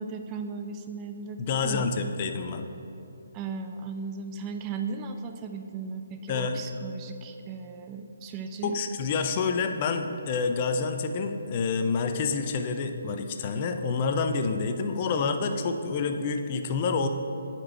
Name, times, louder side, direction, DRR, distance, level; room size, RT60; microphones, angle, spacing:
voice 1, 0.0-1.9 3.3-8.8, right 5 dB, 20° right, 5 dB, 0.4 m, -36 dB
voice 2, 1.4-2.7 6.3-6.6 8.6-17.1, left 4 dB, 35° left, 7 dB, 0.5 m, -28 dB
9.8 x 4.4 x 4.4 m, 2.9 s
figure-of-eight pair, 140°, 0 cm